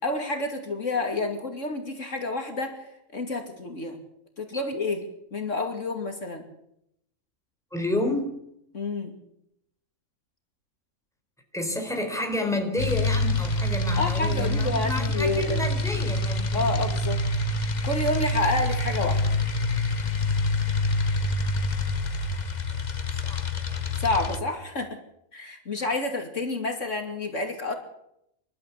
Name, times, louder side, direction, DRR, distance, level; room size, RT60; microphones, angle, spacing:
voice 1, 0.0-4.0 4.4-6.4 8.7-9.1 14.0-15.6 16.5-17.2 17.8-19.2 24.0-25.0 25.3-27.7, left 2 dB, 60° left, 4 dB, 3.0 m, -29 dB
voice 2, 7.7-8.3 11.5-16.7 22.7-22.8 23.2-24.0, left 1 dB, ahead, 3 dB, 4.3 m, -30 dB
sound 1, 12.8-24.4, left 2 dB, 35° left, 1.3 m, -26 dB
27.0 x 12.5 x 8.5 m, 0.78 s
omnidirectional pair, 1.4 m